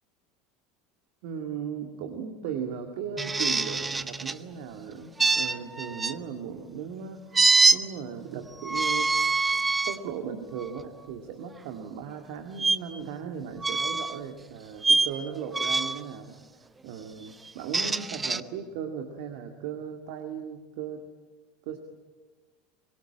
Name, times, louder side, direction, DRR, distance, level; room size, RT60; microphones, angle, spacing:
voice 1, 1.2-7.4 7.7-9.1 9.9-21.0 21.6-21.8, right 7 dB, 60° right, 6 dB, 2.1 m, -37 dB
sound 1, 3.2-4.4 5.2-6.2 7.3-7.8 8.6-10.0 10.6-10.8 12.6-12.8 13.6-14.2 14.8-15.1 15.5-16.0 17.5-18.4, right 3 dB, 15° right, 0.8 m, -24 dB
24.5 x 21.5 x 8.9 m, 1.3 s
figure-of-eight pair, 75°, 0 cm